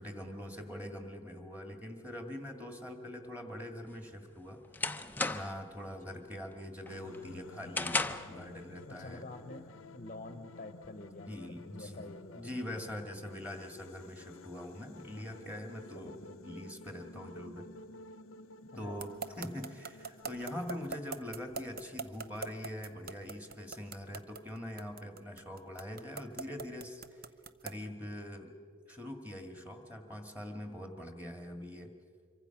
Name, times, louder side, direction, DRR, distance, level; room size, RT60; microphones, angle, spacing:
voice 1, 0.0-4.9 5.3-9.2 11.3-12.1 12.3-16.1 16.4-17.7 18.8-19.1 19.4-27.2 27.6-28.5 28.9-31.9, left 1 dB, 5° right, 5 dB, 2.0 m, -43 dB
sound 1, 3.9-5.7 6.1-6.5 6.9-8.4, left 3 dB, 10° left, 0.6 m, -35 dB
voice 2, 5.8-6.2 8.9-11.4 11.8-12.5 13.6-13.7 15.1-15.5 15.9-16.6 18.6-19.1, left 2 dB, 40° left, 9 dB, 0.9 m, -49 dB
sound 2, 6.9-21.0, left 2 dB, 80° left, 0.8 m, -52 dB
sound 3, 19.0-27.9, right 4 dB, 45° right, 0.8 m, -41 dB
26.0 x 24.0 x 5.9 m, 2.1 s
head